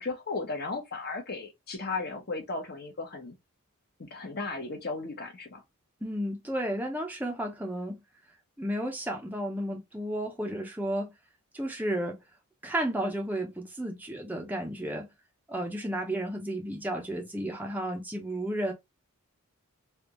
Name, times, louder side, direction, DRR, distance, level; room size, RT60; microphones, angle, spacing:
voice 1, 0.0-3.3 4.0-5.6, left 3 dB, 45° left, 1.1 m, -35 dB
voice 2, 6.0-8.0 8.6-11.1 11.5-12.2 12.6-15.1 15.5-18.7, right 1 dB, 10° right, 0.7 m, -32 dB
3.4 x 2.4 x 2.9 m
head